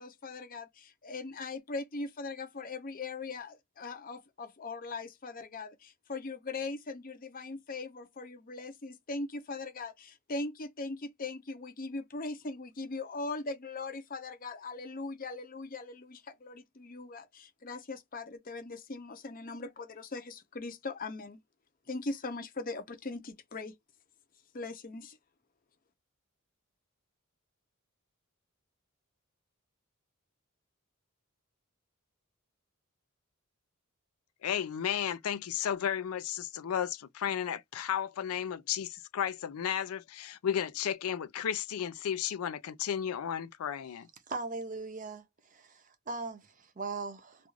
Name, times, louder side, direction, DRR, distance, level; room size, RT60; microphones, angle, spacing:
voice 1, 0.0-21.4 21.9-23.7 24.5-25.2, left 3 dB, 40° left, 0.6 m, -40 dB
voice 2, 34.4-44.1, left 9 dB, 90° left, 0.4 m, -33 dB
voice 3, 44.3-45.3 45.5-47.5, right 3 dB, 35° right, 0.7 m, -39 dB
2.4 x 2.3 x 3.0 m
head